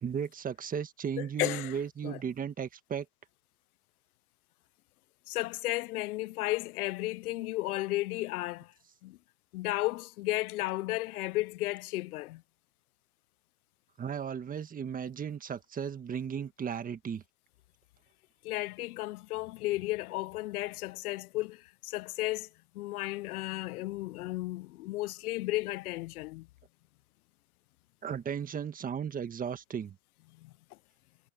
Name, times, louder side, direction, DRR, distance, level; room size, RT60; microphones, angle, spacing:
voice 1, 0.0-3.1 14.0-17.2 28.0-30.0, right 7 dB, 20° right, 1.5 m, -35 dB
voice 2, 1.2-1.8 2.0-2.2 5.3-8.7 9.0-9.2 9.5-12.4 18.4-22.5 22.7-26.5 30.4-30.5, left 18 dB, 85° left, 0.6 m, -34 dB
supercardioid pair, 130°, 44 cm